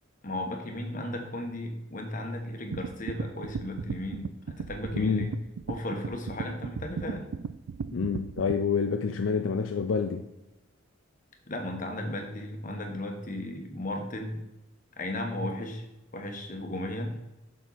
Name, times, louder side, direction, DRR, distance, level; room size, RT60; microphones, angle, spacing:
voice 1, 0.2-5.3 5.7-7.3 11.5-14.4 15.0-15.9 16.1-17.2, left 1 dB, 40° left, 1.2 m, -35 dB
sound 1, 2.7-8.6, right 6 dB, 90° right, 0.4 m, -36 dB
voice 2, 4.9-5.3 7.9-10.2, left 5 dB, 70° left, 0.4 m, -27 dB
7.1 x 6.3 x 4.1 m
head